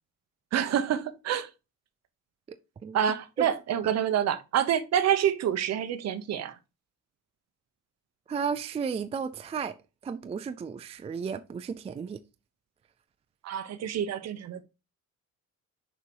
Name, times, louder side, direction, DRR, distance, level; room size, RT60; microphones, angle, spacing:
voice 1, 0.5-1.5 2.9-6.5 13.4-14.6, right 9 dB, 55° right, 1.0 m, -27 dB
voice 2, 8.3-9.7 10.0-12.2, right 6 dB, 20° right, 0.3 m, -33 dB
6.7 x 5.3 x 4.6 m
cardioid pair, 160°, 32 cm